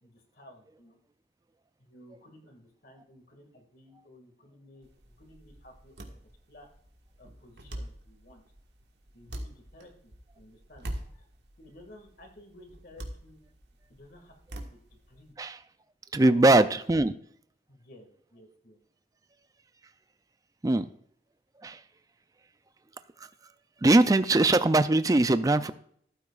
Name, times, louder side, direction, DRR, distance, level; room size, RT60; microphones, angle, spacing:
voice 1, 0.0-1.0 1.8-4.9 5.2-6.1 6.5-6.7 7.2-8.4 9.1-10.9 11.1-11.2 11.6-13.4 13.9-14.8 15.1-15.3 16.2-16.5 17.7-18.8, left 1 dB, 55° left, 4 dB, 2.1 m, -54 dB
sound 1, 4.8-15.3, right 1 dB, 80° right, 1.6 m, -44 dB
voice 2, 16.1-17.1 20.6-20.9 21.6-21.8 23.8-25.7, right 2 dB, 20° right, 11 dB, 0.4 m, -21 dB
14.0 x 12.0 x 2.5 m, 0.62 s
head